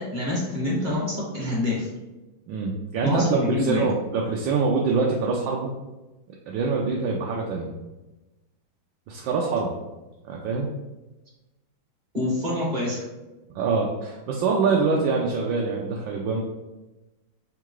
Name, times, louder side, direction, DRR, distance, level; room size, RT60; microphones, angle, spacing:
voice 1, 0.0-1.9 3.0-3.9 12.1-13.0, left 1 dB, 30° right, -5 dB, 1.1 m, -26 dB
voice 2, 2.5-5.7 6.5-7.7 9.1-9.8 10.2-10.7 13.5-16.4, right 4 dB, 75° right, -2 dB, 1.2 m, -25 dB
3.7 x 2.4 x 4.5 m, 1.1 s
omnidirectional pair, 2.1 m